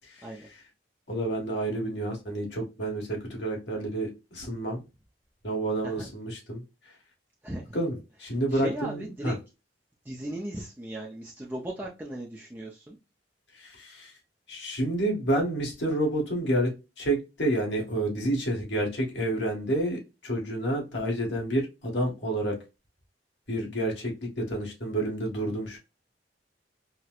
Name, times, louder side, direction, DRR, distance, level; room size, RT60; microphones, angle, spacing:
voice 1, 0.1-0.6 1.1-4.8 5.4-7.0 7.7-9.3 13.5-14.1 14.5-22.6 23.5-25.8, right 1 dB, 75° left, -1 dB, 1.4 m, -29 dB
voice 2, 7.4-7.8 8.5-9.3 10.0-13.0, right 1 dB, 10° right, -3 dB, 0.5 m, -37 dB
4.2 x 2.1 x 2.3 m, 0.27 s
head